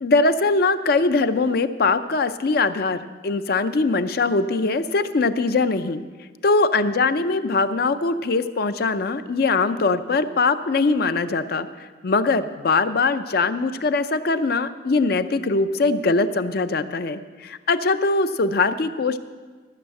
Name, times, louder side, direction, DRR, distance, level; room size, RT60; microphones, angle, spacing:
voice 1, 0.0-6.0 6.4-19.2, left 3 dB, 55° left, 11 dB, 0.5 m, -22 dB
14.0 x 6.4 x 7.6 m, 1.4 s
head